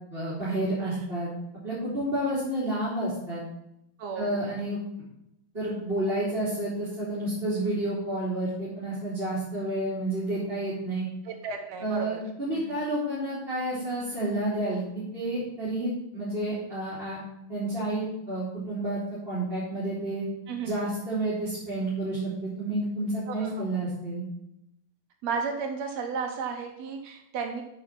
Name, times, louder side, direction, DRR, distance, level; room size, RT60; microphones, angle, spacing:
voice 1, 0.1-1.3 1.6-3.4 4.1-4.8 5.5-11.1 11.8-17.2 17.5-20.2 20.6-24.2, right 1 dB, 15° right, -11 dB, 2.7 m, -30 dB
voice 2, 4.0-4.3 11.2-12.2 12.5-12.8 20.5-20.7 23.3-23.5 25.2-27.6, right 5 dB, 70° right, 4 dB, 1.7 m, -33 dB
8.6 x 5.6 x 5.9 m, 0.83 s
omnidirectional pair, 4.2 m